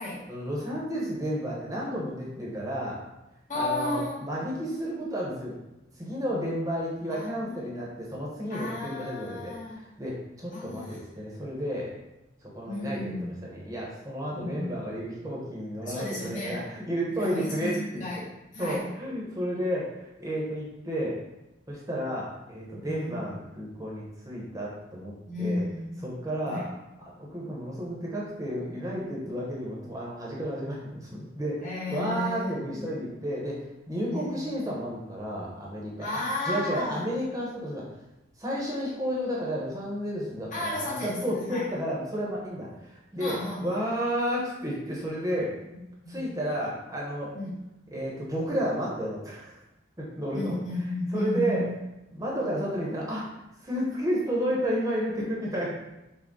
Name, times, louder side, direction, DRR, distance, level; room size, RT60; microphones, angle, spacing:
voice 1, 0.3-3.0 3.5-5.5 6.0-11.9 12.4-18.2 18.6-21.2 21.7-25.6 26.0-26.7 27.0-37.8 38.4-45.5 46.1-47.4 47.9-49.6 50.0-50.6 51.1-51.7 52.1-53.3 53.6-55.7, equal, 20° right, -4 dB, 0.9 m, -32 dB
voice 2, 3.5-4.3 7.1-7.7 8.5-9.8 10.5-11.0 12.7-13.4 14.3-14.7 15.8-16.7 17.1-18.9 22.7-23.4 25.3-26.1 26.5-26.7 31.6-32.9 34.0-34.5 36.0-37.0 40.5-41.6 43.2-43.8 45.7-46.4 47.3-47.5 50.3-51.7, left 2 dB, 45° left, -8 dB, 1.1 m, -33 dB
5.9 x 2.3 x 3.7 m, 0.93 s
head